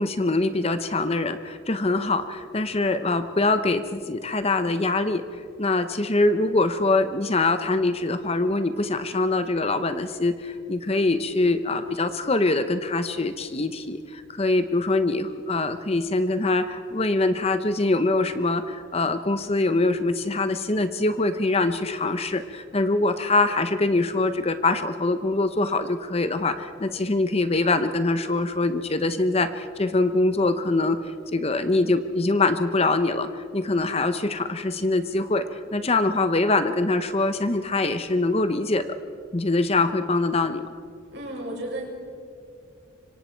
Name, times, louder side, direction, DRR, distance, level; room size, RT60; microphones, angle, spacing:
voice 1, 0.0-5.2 5.6-31.0 31.3-38.9 39.3-40.7, left 2 dB, 30° left, 10 dB, 0.7 m, -24 dB
voice 2, 41.1-41.9, right 1 dB, 55° right, -2 dB, 6.2 m, -33 dB
25.5 x 25.0 x 4.5 m, 2.3 s
head